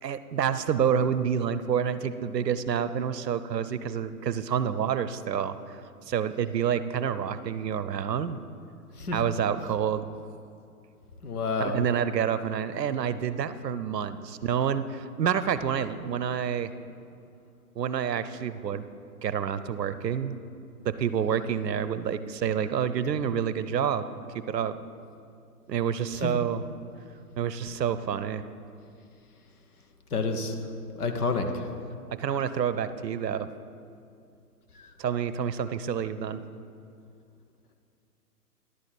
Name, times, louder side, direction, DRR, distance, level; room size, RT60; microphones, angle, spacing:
voice 1, 0.0-5.6 6.1-8.4 9.1-10.1 11.6-16.7 17.8-18.8 19.2-20.4 20.8-24.1 24.3-24.8 25.7-26.7 27.4-28.4 32.1-33.5 35.0-36.4, right 8 dB, 85° right, 13 dB, 0.7 m, -28 dB
voice 2, 11.2-11.8 30.1-30.5 31.0-31.5, left 4 dB, 65° left, 5 dB, 1.2 m, -28 dB
11.5 x 4.1 x 7.6 m, 2.5 s
hypercardioid pair, 145°, 48 cm